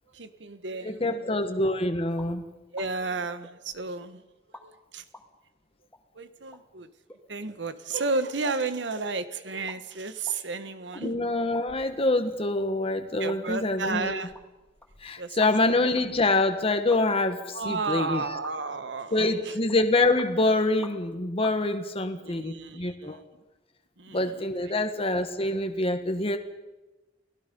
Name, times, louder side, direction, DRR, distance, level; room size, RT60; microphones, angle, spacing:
voice 1, 0.1-1.5 2.7-4.2 4.6-5.0 6.1-6.9 7.3-11.2 13.2-14.3 15.2-15.8 17.5-19.5 22.2-23.2 24.0-24.3, right 3 dB, 75° right, 11 dB, 1.4 m, -33 dB
voice 2, 0.8-2.4 11.0-14.2 15.0-18.2 19.1-23.2 24.1-26.4, left 2 dB, 30° left, 7 dB, 1.5 m, -26 dB
sound 1, 2.2-2.3 2.8-2.9 3.4-4.1 4.5-4.7 5.1-5.3 5.9-6.0 6.5-6.6 7.1-7.2 7.5-7.6 7.9-8.0 8.5-8.6 9.0-9.1 9.5-9.8 10.1-11.0 11.5-12.2 12.6-12.7 13.3-13.4 13.9-15.7 16.0-16.1 16.9-17.0 17.8-18.1 18.4-18.8 19.1-19.3 19.7-20.3 20.8-21.1 21.4-21.6, left 1 dB, 10° left, 2.5 m, -48 dB
29.0 x 18.5 x 5.5 m, 1.1 s
head